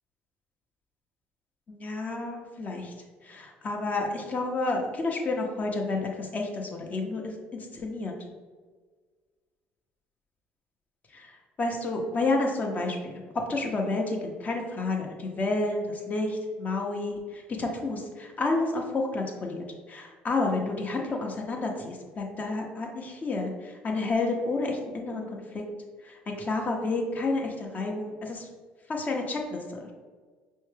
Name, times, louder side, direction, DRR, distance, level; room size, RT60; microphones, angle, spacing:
voice 1, 1.7-2.9 3.2-8.1 11.1-13.1 13.5-19.6 19.9-25.6 26.0-28.5 28.9-29.9, left 2 dB, 35° left, 1 dB, 0.8 m, -30 dB
5.3 x 2.3 x 3.2 m, 1.5 s
supercardioid pair, 80°, 5 cm